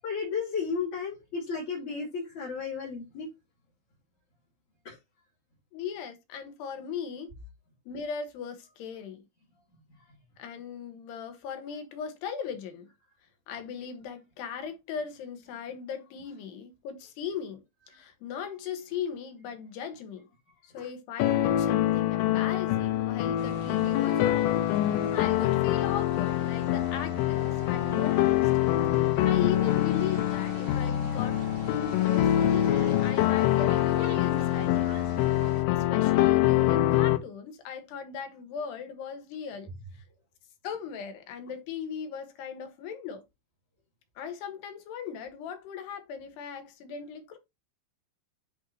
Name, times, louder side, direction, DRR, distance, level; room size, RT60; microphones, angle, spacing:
voice 1, 0.0-3.3 4.9-5.0 20.8-20.9, left 5 dB, 40° left, 3.6 m, -33 dB
voice 2, 5.7-7.3 7.9-9.2 10.4-12.9 13.5-20.3 20.6-28.5 29.0-34.9 35.7-39.7 39.9-40.0 40.6-43.2 44.2-47.4, left 7 dB, 65° left, 3.1 m, -38 dB
sound 1, 21.2-37.2, left 13 dB, 85° left, 3.4 m, -25 dB
sound 2, 23.4-35.6, right 5 dB, 90° right, 1.6 m, -44 dB
11.0 x 4.7 x 2.9 m
omnidirectional pair, 5.7 m